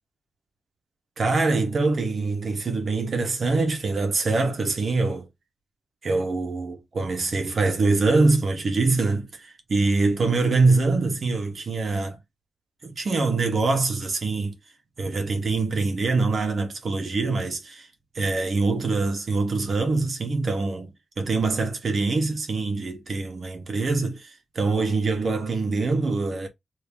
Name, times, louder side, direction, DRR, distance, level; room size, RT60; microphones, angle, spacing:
voice 1, 1.2-5.3 6.0-12.2 12.8-14.6 15.0-17.9 18.1-26.5, right 3 dB, 65° right, 1.2 m, -24 dB
2.8 x 2.8 x 3.6 m
cardioid pair, 55°, 0 cm